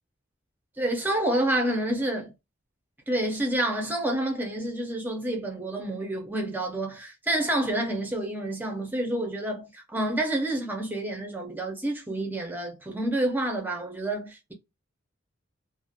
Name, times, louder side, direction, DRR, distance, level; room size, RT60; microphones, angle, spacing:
voice 1, 0.8-2.3 3.1-14.5, right 1 dB, 10° right, 0.6 m, -28 dB
2.4 x 2.1 x 2.7 m
head